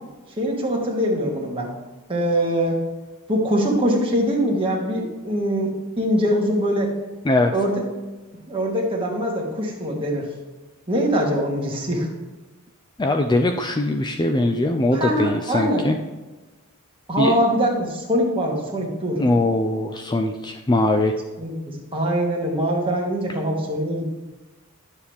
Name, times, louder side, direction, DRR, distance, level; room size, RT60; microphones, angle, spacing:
voice 1, 0.4-1.7 2.1-2.8 3.3-6.9 7.5-7.8 8.5-10.2 10.9-12.1 14.9-15.9 17.1-19.2 21.4-24.1, equal, 25° right, -2 dB, 1.8 m, -23 dB
voice 2, 13.0-16.0 17.2-17.3 19.2-21.1, left 2 dB, 20° left, 5 dB, 0.4 m, -21 dB
11.0 x 7.2 x 3.5 m, 1.2 s
head